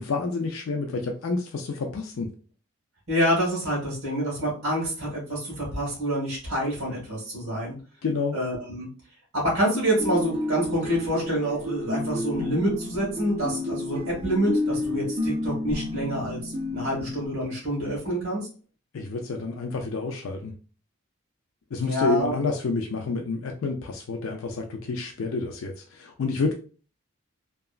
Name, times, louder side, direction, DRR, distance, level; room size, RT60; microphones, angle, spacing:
voice 1, 0.0-2.3 8.0-8.3 18.9-20.5 21.7-26.5, left 3 dB, 70° left, 2 dB, 0.4 m, -29 dB
voice 2, 3.1-7.7 8.3-8.9 9.3-18.5 21.8-22.3, equal, 60° right, -6 dB, 1.4 m, -27 dB
sound 1, 10.0-17.3, left 2 dB, 25° right, 0.5 m, -30 dB
2.9 x 2.4 x 2.3 m, 0.37 s
head